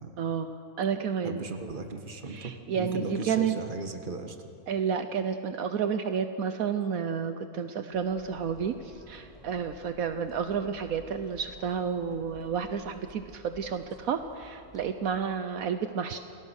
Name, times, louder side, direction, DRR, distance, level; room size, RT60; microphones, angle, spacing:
voice 1, 0.2-1.4 2.3-3.6 4.7-16.2, right 7 dB, 70° right, 9 dB, 1.2 m, -31 dB
voice 2, 1.2-4.4, right 3 dB, 35° right, 5 dB, 1.7 m, -37 dB
sound 1, 7.9-15.3, equal, ahead, 4.5 m, -53 dB
27.5 x 19.0 x 6.5 m, 2.8 s
omnidirectional pair, 1.5 m